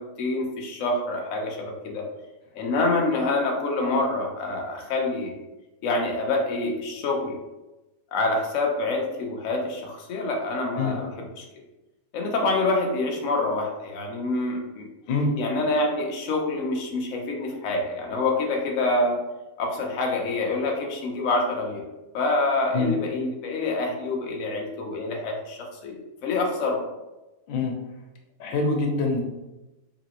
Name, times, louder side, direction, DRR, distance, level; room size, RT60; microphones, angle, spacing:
voice 1, 0.0-2.1 2.5-5.4 5.8-7.4 8.1-11.4 12.1-14.9 15.4-19.2 19.6-21.8 22.1-26.8, left 2 dB, 90° left, 0 dB, 0.6 m, -26 dB
voice 2, 28.4-29.2, left 3 dB, 75° left, 2 dB, 1.4 m, -24 dB
4.0 x 3.0 x 3.0 m, 1.0 s
omnidirectional pair, 2.3 m